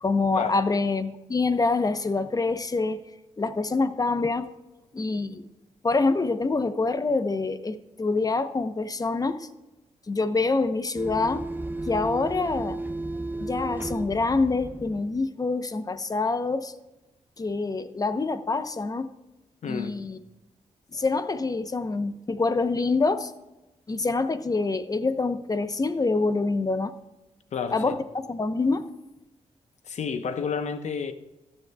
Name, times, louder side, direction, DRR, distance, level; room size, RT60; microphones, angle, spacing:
voice 1, 0.0-3.0 3.4-4.5 4.9-5.5 5.8-9.5 10.1-11.4 11.9-12.8 13.4-16.7 17.4-19.1 19.7-20.2 20.9-23.3 23.9-26.9 27.7-28.9, left 3 dB, 30° left, 0.8 m, -26 dB
sound 1, 10.9-15.2, right 2 dB, 15° right, 0.6 m, -34 dB
voice 2, 19.6-20.0 27.5-27.9 29.8-31.1, left 6 dB, 70° left, 1.0 m, -30 dB
14.5 x 9.9 x 2.3 m
cardioid pair, 85°, 12 cm